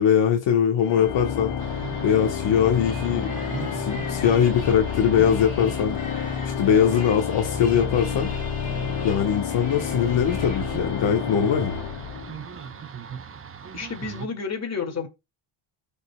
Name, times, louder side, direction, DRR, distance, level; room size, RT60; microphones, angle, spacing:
voice 1, 0.0-1.5 2.0-3.3 3.6-6.0 6.4-8.3 9.0-11.7, left 8 dB, 60° left, 1.2 m, -21 dB
Organ, 0.8-12.7, left 7 dB, 85° left, 2.2 m, -30 dB
sound 1, 1.6-14.3, right 7 dB, 25° right, 0.6 m, -39 dB
sound 2, 2.8-10.8, left 2 dB, 15° left, 2.0 m, -44 dB
voice 2, 13.7-15.1, left 5 dB, 30° left, 2.1 m, -30 dB
14.5 x 5.5 x 2.2 m
cardioid pair, 110°, 50 cm